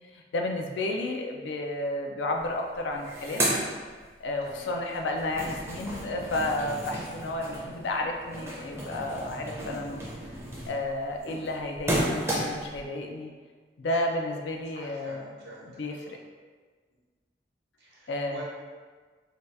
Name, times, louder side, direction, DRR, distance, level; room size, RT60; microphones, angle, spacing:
voice 1, 0.1-3.4 4.2-10.1 10.7-13.3 13.8-15.2 15.8-16.2 18.1-18.4, left 2 dB, 90° left, 2 dB, 0.4 m, -32 dB
sound 1, 2.4-2.5 2.7-4.5 4.9-12.8, right 1 dB, 15° right, 0.5 m, -33 dB
voice 2, 4.4-4.8 14.0-14.1 14.7-16.2 17.8-18.4, equal, 70° right, -5 dB, 0.8 m, -47 dB
2.7 x 2.3 x 3.2 m, 1.5 s
head